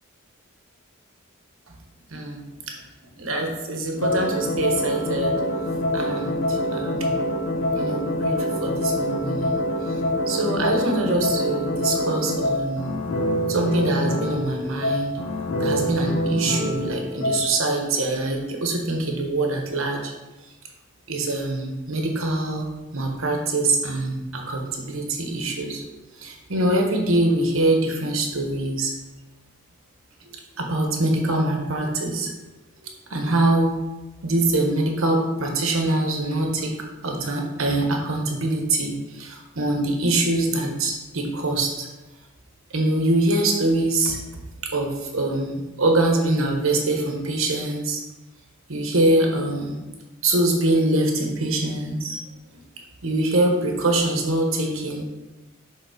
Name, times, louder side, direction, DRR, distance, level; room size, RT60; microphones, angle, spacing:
voice 1, 2.1-2.8 3.2-5.3 5.9-7.2 7.7-9.6 9.9-10.0 10.3-12.9 13.5-15.1 15.6-20.1 21.1-22.7 22.9-28.9 30.3-32.3 32.8-33.7 34.2-36.7 37.0-41.9 42.7-44.2 44.6-48.0 48.7-49.8 50.2-52.2 53.0-55.1, right 2 dB, 70° right, 2 dB, 1.2 m, -24 dB
sound 1, 4.0-17.5, left 1 dB, 90° left, 1.1 m, -25 dB
7.0 x 3.7 x 5.1 m, 1.1 s
head